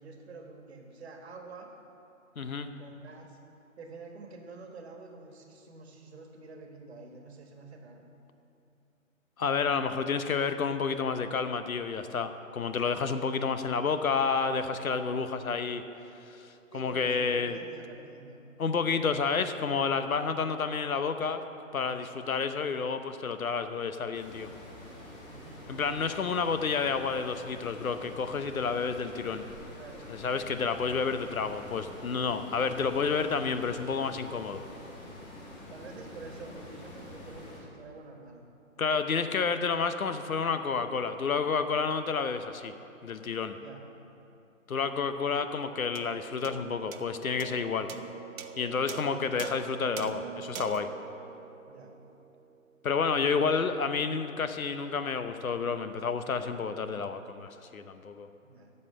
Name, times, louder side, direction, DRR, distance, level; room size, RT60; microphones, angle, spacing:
voice 1, 0.0-1.7 2.3-3.4 3.8-8.0 16.7-18.4 21.8-22.0 25.3-25.7 29.8-30.1 35.7-38.4 43.6-43.8 51.7-52.0 53.3-53.6 58.4-58.7, right 3 dB, 50° right, 3 dB, 1.5 m, -48 dB
voice 2, 2.4-2.7 9.4-15.8 16.3-16.5 16.7-17.6 18.6-21.4 21.7-24.5 25.7-29.4 30.1-34.6 38.8-42.7 43.0-43.6 44.7-47.9 48.6-50.9 52.8-58.3, left 5 dB, 85° left, 10 dB, 0.8 m, -30 dB
sound 1, 24.1-37.6, left 1 dB, 30° left, 2.4 m, -47 dB
sound 2, 45.9-52.6, right 6 dB, 80° right, 0.8 m, -43 dB
8.6 x 6.7 x 7.6 m, 2.8 s
figure-of-eight pair, 145°, 41 cm